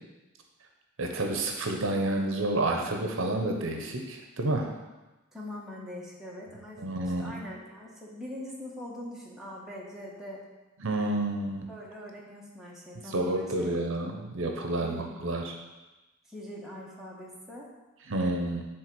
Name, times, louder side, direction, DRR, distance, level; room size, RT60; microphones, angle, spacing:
voice 1, 1.0-4.7 6.8-7.4 10.8-11.7 13.1-15.5 18.1-18.7, right 2 dB, 65° right, 2 dB, 0.8 m, -29 dB
voice 2, 5.3-10.4 11.7-13.7 14.8-15.1 16.2-17.7, left 1 dB, ahead, -5 dB, 1.3 m, -42 dB
7.6 x 3.8 x 6.1 m, 1.1 s
head